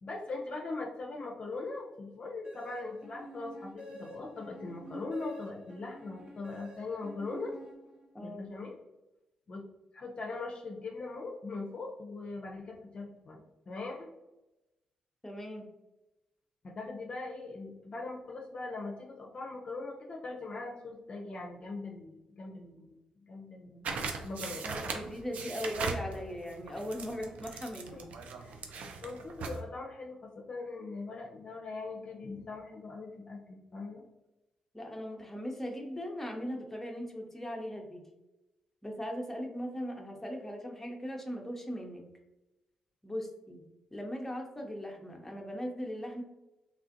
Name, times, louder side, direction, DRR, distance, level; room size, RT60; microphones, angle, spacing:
voice 1, 0.0-7.5 8.2-8.8 9.5-9.6 9.9-13.4 13.7-14.1 16.6-23.0 23.3-23.9 24.2-24.7 28.4-28.6 29.0-34.0, left 3 dB, 45° left, -1 dB, 0.5 m, -41 dB
sound 1, 2.4-8.3, right 1 dB, 45° right, 1.0 m, -48 dB
voice 2, 8.1-8.5 15.2-15.7 24.6-28.1 34.7-38.0 38.8-42.0 43.0-43.6 43.9-46.2, equal, 10° left, 1 dB, 0.7 m, -39 dB
sound 2, 23.9-29.6, right 4 dB, 65° right, 0.4 m, -39 dB
3.4 x 2.4 x 2.5 m, 0.97 s
hypercardioid pair, 45°, 3 cm